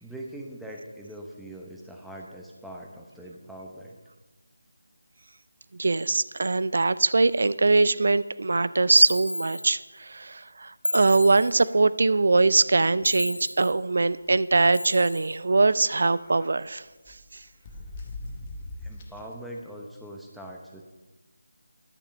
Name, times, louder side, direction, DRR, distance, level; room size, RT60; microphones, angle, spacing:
voice 1, 0.0-4.0 18.8-20.8, right 1 dB, ahead, -2 dB, 0.8 m, -42 dB
voice 2, 5.8-16.8, right 3 dB, 60° right, 17 dB, 0.4 m, -22 dB
sound 1, 8.9-9.7 10.8-11.7 13.0-13.7 14.7-15.4, left 1 dB, 85° left, 0.9 m, -33 dB
sound 2, 12.4-13.4 13.7-13.8 14.1-14.3 15.5-16.5 17.0-19.3, left 2 dB, 25° left, 1.0 m, -42 dB
11.0 x 6.8 x 5.3 m, 1.2 s
figure-of-eight pair, 160°, 0 cm